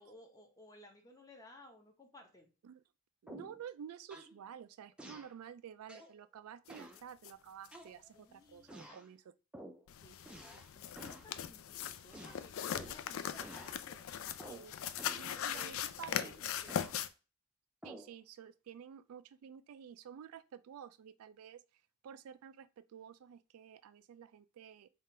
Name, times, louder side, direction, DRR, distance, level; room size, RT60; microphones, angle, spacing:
voice 1, 0.0-2.5 8.1-9.0 10.0-14.5 15.3-15.7 16.1-16.8, left 1 dB, 15° left, 0.8 m, -58 dB
voice 2, 3.2-9.3 14.5-14.8 15.1-16.3 17.8-24.9, right 8 dB, 80° right, 0.3 m, -51 dB
sound 1, 3.3-3.6 4.1-4.4 5.0-5.3 5.9-6.2 6.7-7.0 7.7-8.2 8.7-9.1 9.5-9.8 10.2-10.7 11.0-11.3 12.1-13.0 13.4-13.8 14.4-14.7 15.0-15.3 16.1-17.0 17.8-18.1, right 1 dB, 5° right, 0.4 m, -51 dB
sound 2, 7.0-7.1 7.2-7.3 7.6-7.8 9.9-17.1, left 9 dB, 65° left, 0.3 m, -40 dB
3.7 x 2.5 x 4.2 m
head